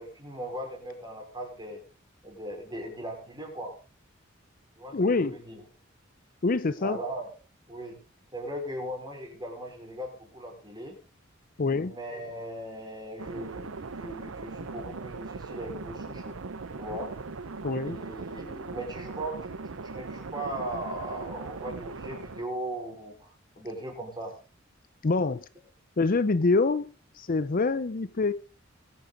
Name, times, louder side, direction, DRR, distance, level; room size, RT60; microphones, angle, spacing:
voice 1, 0.0-1.8 2.2-3.7 4.8-5.6 6.8-7.3 7.7-8.0 8.3-11.0 11.6-16.4 16.8-17.1 17.8-24.4, right 1 dB, 20° right, 5.0 m, -38 dB
voice 2, 4.9-5.4 6.4-7.0 11.6-12.0 17.6-18.0 25.0-25.4 26.0-28.3, left 3 dB, 45° left, 0.6 m, -25 dB
sound 1, 13.2-22.5, right 4 dB, 85° right, 0.8 m, -39 dB
21.0 x 8.8 x 3.9 m
head